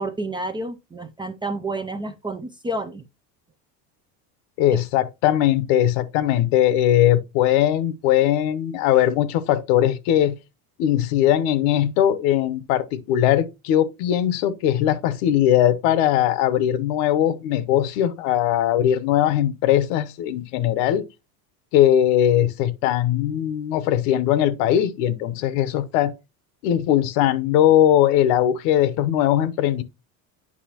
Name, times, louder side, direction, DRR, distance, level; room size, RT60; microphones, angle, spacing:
voice 1, 0.0-3.0 4.7-4.8, right 2 dB, 10° right, 0.4 m, -29 dB
voice 2, 4.6-10.3 10.8-21.0 21.7-26.1 26.6-29.8, left 11 dB, 70° left, 0.9 m, -20 dB
8.5 x 5.6 x 2.8 m
supercardioid pair, 115°, 42 cm